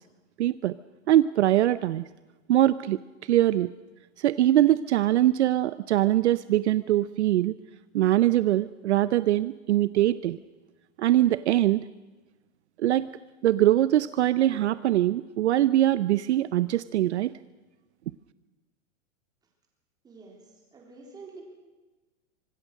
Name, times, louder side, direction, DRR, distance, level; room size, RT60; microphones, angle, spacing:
voice 1, 0.4-0.7 1.1-2.0 2.5-3.0 3.3-3.7 4.2-7.5 7.9-10.4 11.0-11.8 12.8-13.1 13.4-17.3, right 13 dB, 65° right, 15 dB, 0.7 m, -22 dB
voice 2, 20.7-21.4, right 4 dB, 10° right, 0 dB, 3.6 m, -46 dB
25.0 x 20.0 x 6.5 m, 1.2 s
supercardioid pair, 175°, 38 cm